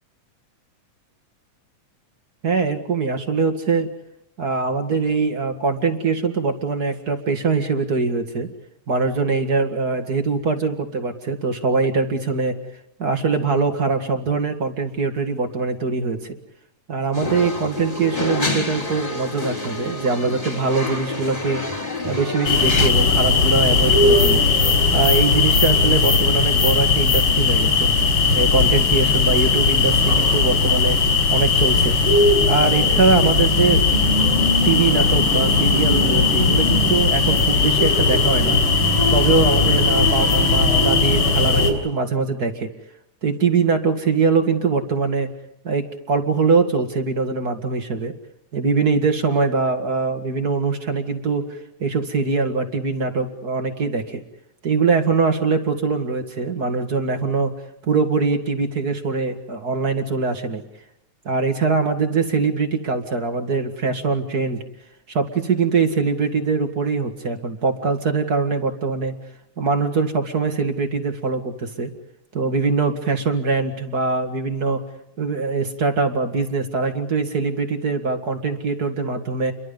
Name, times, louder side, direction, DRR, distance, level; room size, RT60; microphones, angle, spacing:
voice 1, 2.4-3.9 4.4-8.5 8.9-12.5 13.0-16.4 16.9-21.6 22.0-24.5 24.9-27.9 28.3-31.0 31.3-32.0 32.5-33.8 34.6-38.6 39.1-42.7 43.2-45.3 45.6-48.1 48.5-54.2 54.6-57.5 57.9-60.6 61.2-64.6 65.1-69.1 69.6-71.9 72.3-74.8 75.2-79.5, right 4 dB, 35° right, 5 dB, 2.3 m, -22 dB
sound 1, 17.1-22.9, left 2 dB, 15° left, 3.1 m, -28 dB
sound 2, 22.5-41.7, left 3 dB, 50° left, 6.1 m, -18 dB
30.0 x 23.5 x 5.4 m, 0.80 s
omnidirectional pair, 3.4 m